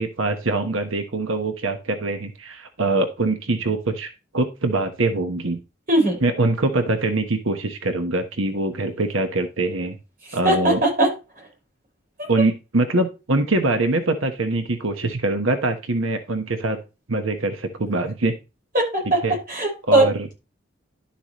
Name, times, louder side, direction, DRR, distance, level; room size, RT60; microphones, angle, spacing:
voice 1, 0.0-5.6 6.2-10.0 10.3-10.8 12.3-16.8 17.1-18.3 19.2-19.4 19.9-20.3, right 2 dB, 85° right, 7 dB, 1.2 m, -23 dB
voice 2, 5.9-6.2 10.4-11.1 18.7-19.2 19.5-20.1, right 1 dB, 45° right, 1 dB, 5.5 m, -19 dB
11.5 x 7.1 x 3.1 m, 0.28 s
head